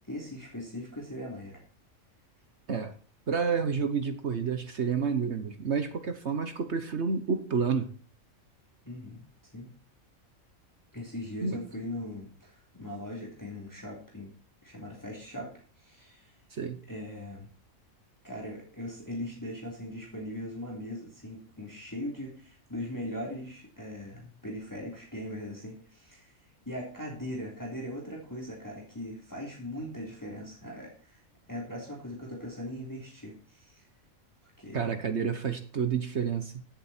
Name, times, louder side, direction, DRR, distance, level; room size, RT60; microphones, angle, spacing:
voice 1, 0.1-1.6 8.8-9.2 9.5-9.7 10.9-14.3 14.6-15.5 15.8-16.3 16.9-17.5 18.2-26.4 26.6-31.2 31.5-33.8 34.4-35.1, left 1 dB, 15° left, -3 dB, 3.4 m, -40 dB
voice 2, 3.3-7.9 11.4-11.6 16.5-16.8 34.7-36.5, right 6 dB, 55° right, 9 dB, 1.3 m, -29 dB
16.0 x 7.7 x 4.4 m, 0.41 s
omnidirectional pair, 1.4 m